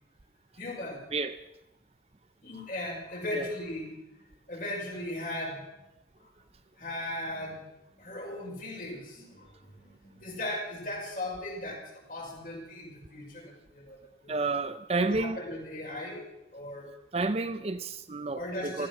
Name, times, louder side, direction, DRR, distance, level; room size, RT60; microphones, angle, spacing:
voice 1, 0.6-1.0 2.4-4.0 4.5-5.6 6.8-7.7 8.0-9.5 9.8-14.3 15.0-16.2 16.5-16.9 18.3-18.9, left 1 dB, 45° left, 5.5 m, -37 dB
voice 2, 14.3-15.4 17.1-18.9, right 3 dB, 35° right, 0.6 m, -30 dB
15.5 x 15.0 x 6.1 m
head